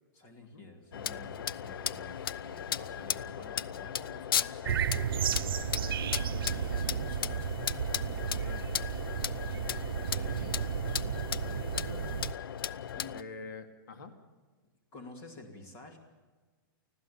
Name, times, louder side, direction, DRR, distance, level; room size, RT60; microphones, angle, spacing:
voice 1, 0.1-7.5 8.0-8.9 10.1-10.7 12.9-13.2 14.9-16.0, left 2 dB, 25° left, 4 dB, 2.6 m, -51 dB
sound 1, 0.9-13.2, left 9 dB, 80° left, 0.7 m, -36 dB
sound 2, 4.6-12.3, right 9 dB, 85° right, 0.7 m, -33 dB
Bowed string instrument, 5.2-8.9, right 4 dB, 45° right, 5.6 m, -61 dB
voice 2, 11.4-12.3 13.1-14.1, left 4 dB, 65° left, 7 dB, 2.4 m, -46 dB
25.0 x 16.0 x 7.2 m, 1.4 s
hypercardioid pair, 175°, 12 cm